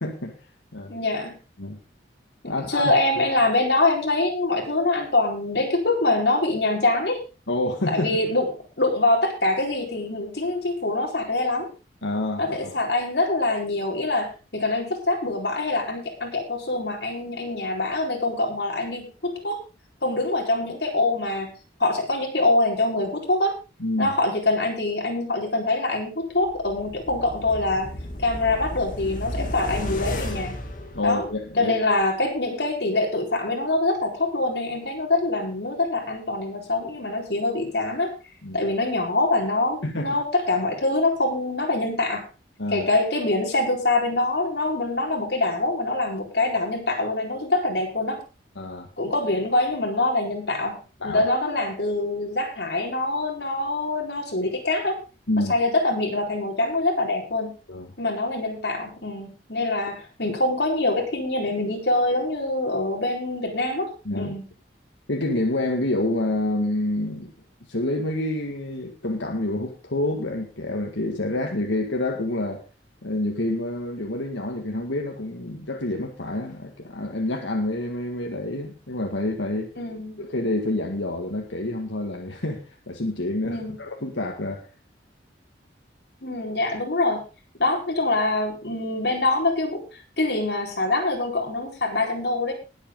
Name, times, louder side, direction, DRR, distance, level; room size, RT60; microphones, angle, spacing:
voice 1, 0.0-0.3 0.7-0.9 1.6-1.8 2.5-2.9 7.5-8.2 12.0-12.7 23.8-24.1 30.9-31.7 38.4-38.6 39.8-40.1 42.6-42.9 48.6-48.9 51.0-51.3 55.3-55.5 57.7-57.9 64.1-64.3 65.1-67.3 67.7-72.6 73.0-79.7 80.2-84.7, left 1 dB, 85° left, 3 dB, 1.9 m, -28 dB
voice 2, 0.9-1.3 2.4-7.2 7.9-8.5 8.8-11.7 12.4-19.6 20.0-21.5 21.8-23.5 24.0-27.9 28.2-30.6 31.0-31.2 31.6-38.1 38.5-42.2 42.7-48.2 49.0-50.8 51.0-55.0 55.5-57.5 58.0-63.9 64.1-64.5 79.8-80.2 83.4-83.8 86.2-87.2 87.6-92.5, left 2 dB, 60° left, 1 dB, 4.4 m, -24 dB
sound 1, 26.4-31.6 32.0-32.1, left 1 dB, 45° left, 2.5 m, -33 dB
20.0 x 8.2 x 3.8 m, 0.32 s
head